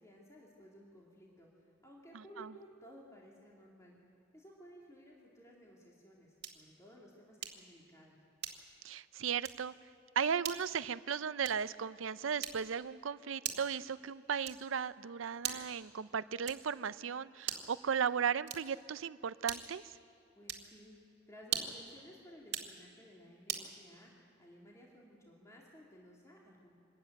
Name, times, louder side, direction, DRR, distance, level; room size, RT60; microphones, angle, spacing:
voice 1, 0.0-3.9 4.3-8.2 20.4-20.9 21.3-24.1 24.4-26.7, equal, 15° left, -3 dB, 2.5 m, -57 dB
voice 2, 2.1-2.5 8.8-9.7 10.2-19.8, right 7 dB, 90° right, 16 dB, 0.5 m, -36 dB
sound 1, 6.4-6.7 7.4-7.7 8.4-8.8 9.4-9.7 10.4-10.7 11.4-11.8 12.4-12.8 13.4-13.8 14.4-14.8 15.4-15.8 16.4-16.8 17.4-17.8 18.4-18.8 19.4-19.9 20.4-20.7 21.4-21.9 22.4-22.8 23.5-23.7, right 9 dB, 60° right, 1.8 m, -41 dB
24.5 x 13.5 x 9.1 m, 2.6 s
head